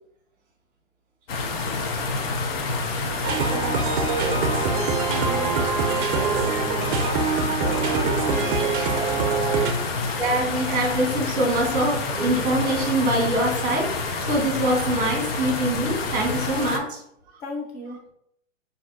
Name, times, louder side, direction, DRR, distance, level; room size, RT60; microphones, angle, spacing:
sound 1, 1.3-16.8, left 3 dB, 50° left, 0.8 m, -28 dB
sound 2, 3.2-9.7, right 5 dB, 45° right, 0.6 m, -24 dB
voice 1, 3.5-9.7 17.4-18.0, left 1 dB, 25° left, 1 dB, 0.8 m, -37 dB
voice 2, 10.2-17.0, right 1 dB, 20° right, 0 dB, 1.3 m, -24 dB
5.5 x 2.6 x 2.6 m, 0.73 s
hypercardioid pair, 125°, 38 cm